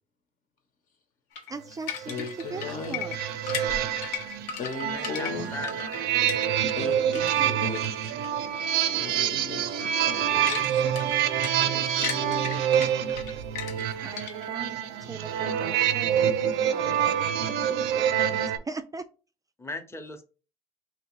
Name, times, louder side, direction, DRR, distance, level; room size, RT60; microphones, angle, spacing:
sound 1, 1.4-6.9 7.1-8.3 8.7-8.9 9.2-9.4 9.8-14.6, left 7 dB, 85° left, 0.9 m, -37 dB
voice 1, 1.5-3.2 3.4-3.5 14.0-17.2 17.5-19.1, right 4 dB, 25° right, 0.3 m, -40 dB
sound 2, 2.0-18.6, right 9 dB, 90° right, 0.5 m, -27 dB
voice 2, 2.1-3.0 4.6-5.6 6.7-8.1 8.9-11.3 11.6-13.2, left 5 dB, 60° left, 1.1 m, -38 dB
voice 3, 4.9-6.2 19.6-20.2, left 1 dB, 15° left, 0.8 m, -38 dB
2.9 x 2.8 x 4.4 m
cardioid pair, 90°, 15 cm